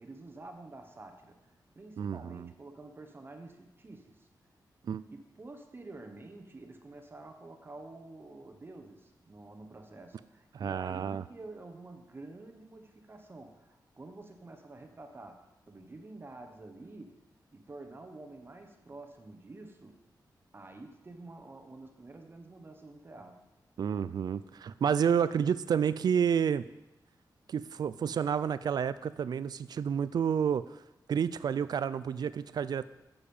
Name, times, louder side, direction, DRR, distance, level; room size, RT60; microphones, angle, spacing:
voice 1, 0.0-1.4 1.7-4.3 5.1-17.2 17.5-20.0 20.5-23.4, right 2 dB, 30° right, 5 dB, 0.9 m, -49 dB
voice 2, 2.0-2.5 4.8-5.0 10.5-11.2 23.8-26.6 27.5-30.6 31.1-32.9, right 7 dB, 65° right, 15 dB, 0.4 m, -30 dB
8.8 x 6.9 x 5.4 m, 0.98 s
wide cardioid pair, 145°, 8 cm